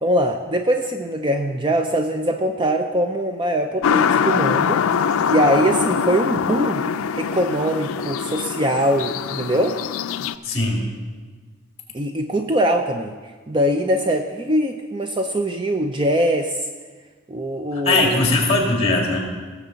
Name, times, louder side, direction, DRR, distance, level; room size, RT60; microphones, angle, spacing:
voice 1, 0.0-4.8 5.3-6.8 7.2-9.8 11.9-13.1 13.5-16.6 17.3-18.2, right 1 dB, 20° right, 5 dB, 0.4 m, -22 dB
sound 1, 3.8-10.3, left 7 dB, 80° left, 0.4 m, -23 dB
voice 2, 10.4-10.9 17.7-19.2, left 2 dB, 25° left, -1 dB, 2.3 m, -19 dB
18.0 x 7.3 x 3.9 m, 1.4 s
head